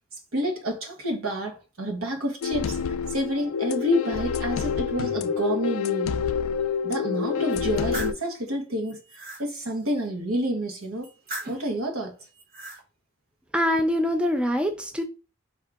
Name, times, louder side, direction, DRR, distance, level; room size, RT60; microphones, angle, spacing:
voice 1, 0.3-2.8 3.1-6.1 6.8-9.0 9.4-11.1 11.5-12.1, equal, 80° right, 1.1 m, -29 dB
sound 1, 2.4-8.1, left 6 dB, 80° left, 0.4 m, -27 dB
sound 2, 7.5-8.2 8.8-9.4 11.0-11.7 12.3-12.8, right 2 dB, 40° right, 1.0 m, -38 dB
voice 2, 13.5-15.0, equal, 5° right, 0.3 m, -24 dB
4.7 x 2.7 x 3.4 m
head